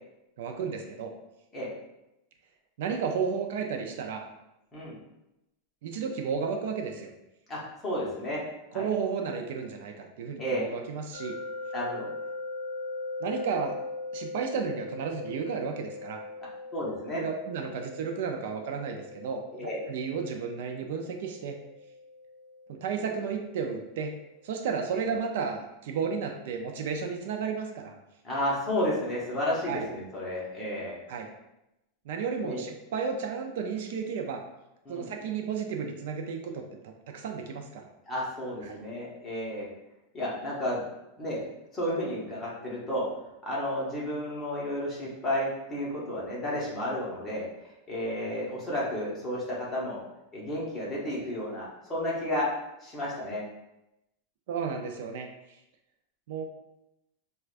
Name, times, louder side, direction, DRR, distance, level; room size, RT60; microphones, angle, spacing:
voice 1, 0.4-1.1 2.8-4.2 5.8-7.1 8.7-11.3 13.2-13.8 14.1-16.2 17.1-21.6 22.7-24.1 24.4-27.9 29.7-29.8 31.1-31.3 32.1-34.4 34.9-37.9 38.7-38.8 48.2-48.4 54.5-55.3 56.3-56.4, right 6 dB, 65° right, 3 dB, 0.4 m, -33 dB
voice 2, 7.5-8.4 8.7-8.9 10.4-10.7 11.7-12.1 16.7-17.2 19.5-19.8 28.2-31.0 32.4-32.6 34.8-35.1 38.1-39.7 40.1-40.8 41.2-41.4 41.7-43.1 43.4-47.5 47.9-50.0 50.3-52.5 52.8-53.4, left 1 dB, 10° left, -6 dB, 0.9 m, -32 dB
sound 1, 11.1-24.0, left 2 dB, 50° left, 0.7 m, -40 dB
4.5 x 2.2 x 2.5 m, 0.89 s
supercardioid pair, 170°, 0 cm